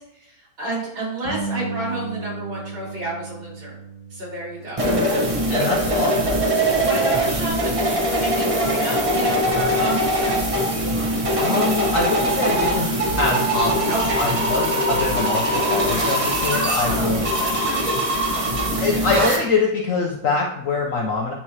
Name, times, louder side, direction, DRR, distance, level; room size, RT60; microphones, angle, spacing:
voice 1, 0.0-3.8 4.1-4.8 5.5-5.7 6.7-10.4 13.9-14.2 16.5-18.1, right 1 dB, 80° right, -7 dB, 3.6 m, -30 dB
Bass guitar, 1.2-7.5, right 5 dB, 45° right, 1.8 m, -35 dB
sound 1, 4.8-19.4, right 1 dB, 30° right, 0.7 m, -22 dB
voice 2, 5.5-6.7 11.4-17.3 18.8-21.3, left 3 dB, 70° left, 0 dB, 0.8 m, -24 dB
8.7 x 4.6 x 2.8 m, 0.86 s
omnidirectional pair, 2.2 m